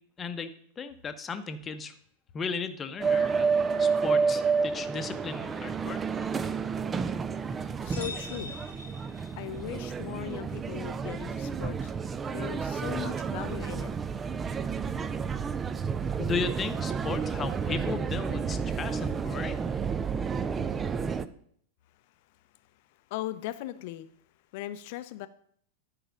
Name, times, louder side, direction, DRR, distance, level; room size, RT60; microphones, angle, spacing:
voice 1, 0.2-1.9 2.3-3.5 3.8-6.0 16.2-19.6, left 5 dB, 20° left, 10 dB, 0.9 m, -35 dB
sound 1, 3.0-21.3, right 5 dB, 20° right, 0.5 m, -30 dB
voice 2, 7.8-8.5 9.4-11.9 12.3-13.9 23.1-24.1 24.5-25.3, left 14 dB, 50° left, 13 dB, 0.6 m, -38 dB
sound 2, 7.9-9.7, left 2 dB, 90° right, 3.9 m, -43 dB
10.0 x 4.9 x 6.6 m, 0.63 s
figure-of-eight pair, 90°, 0 cm